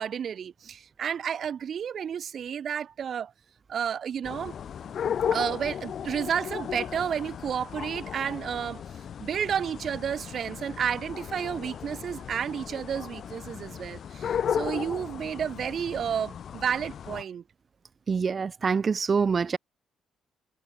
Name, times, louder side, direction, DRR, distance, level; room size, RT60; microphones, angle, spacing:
voice 1, 0.0-3.3 3.7-4.5 5.3-8.8 9.2-17.4, right 8 dB, 55° right, 1.3 m, -31 dB
sound 1, 4.2-17.2, left 8 dB, 60° left, 5.0 m, -35 dB
voice 2, 18.1-19.6, right 5 dB, 40° right, 0.4 m, -25 dB
cardioid pair, 90°, 0 cm